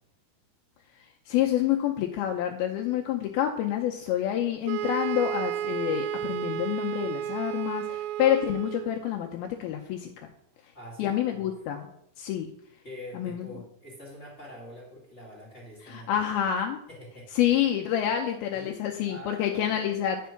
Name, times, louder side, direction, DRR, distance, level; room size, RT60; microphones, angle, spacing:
voice 1, 1.3-10.3 11.0-11.9 12.2-12.5 13.1-13.5 15.9-16.8 17.4-20.2, left 11 dB, 85° left, 2 dB, 2.1 m, -28 dB
sound 1, 4.7-9.1, right 11 dB, 85° right, 2.3 m, -32 dB
voice 2, 10.7-11.5 12.8-16.3 16.9-17.6 18.5-19.9, left 1 dB, 45° left, -3 dB, 0.8 m, -45 dB
9.2 x 5.3 x 5.8 m, 0.74 s
omnidirectional pair, 5.1 m